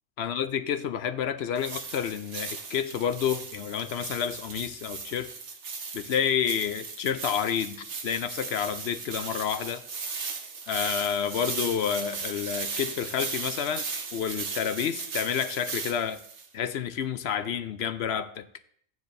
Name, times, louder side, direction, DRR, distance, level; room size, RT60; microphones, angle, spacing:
voice 1, 0.2-5.3 5.9-9.8 10.7-13.8 14.1-16.2 16.5-18.5, left 8 dB, 65° left, 12 dB, 0.7 m, -29 dB
sound 1, 1.6-16.5, right 5 dB, 60° right, 1.3 m, -37 dB
13.5 x 9.4 x 2.6 m, 0.63 s
omnidirectional pair, 1.4 m